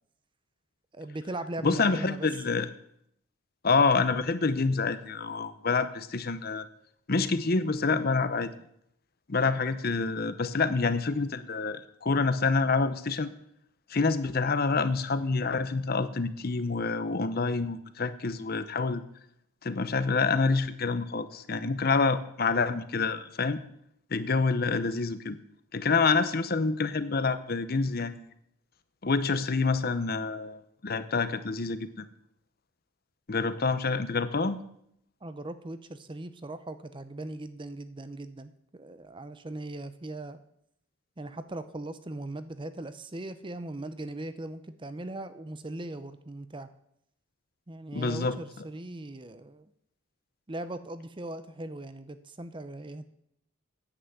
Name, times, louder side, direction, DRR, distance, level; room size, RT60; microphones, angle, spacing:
voice 1, 0.9-2.3 35.2-40.4 41.2-46.7 47.7-49.7 50.5-53.1, right 2 dB, 25° right, 12 dB, 0.6 m, -39 dB
voice 2, 1.6-2.7 3.6-6.7 7.1-8.5 9.3-13.3 13.9-19.0 19.6-23.6 24.1-25.4 25.7-28.3 29.0-32.1 33.3-34.6 47.9-48.4, left 4 dB, 45° left, 12 dB, 0.7 m, -27 dB
10.0 x 8.3 x 7.9 m, 0.73 s
head